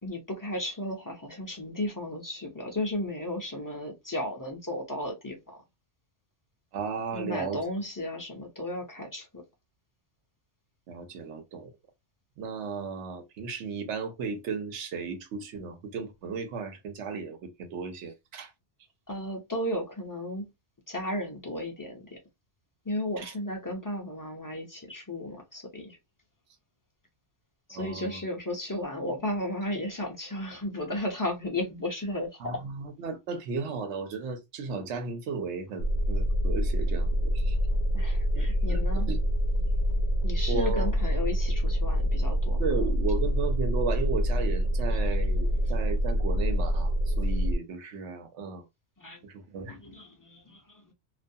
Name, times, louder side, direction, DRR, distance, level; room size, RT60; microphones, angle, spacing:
voice 1, 0.0-5.6 7.1-9.4 19.1-20.5 20.9-22.2 22.8-26.0 27.7-32.6 37.9-39.1 40.2-42.6 44.9-45.0 45.5-45.7 49.0-49.3 49.7-50.9, left 1 dB, 25° left, 0.4 m, -34 dB
voice 2, 6.7-7.6 10.9-11.7 12.4-18.5 23.2-23.3 27.7-28.2 32.4-37.6 38.3-39.2 40.5-40.9 42.6-48.6 49.2-49.8, right 5 dB, 80° right, 1.0 m, -35 dB
sound 1, 35.8-47.6, equal, 75° left, 0.9 m, -26 dB
2.4 x 2.2 x 2.6 m
omnidirectional pair, 1.2 m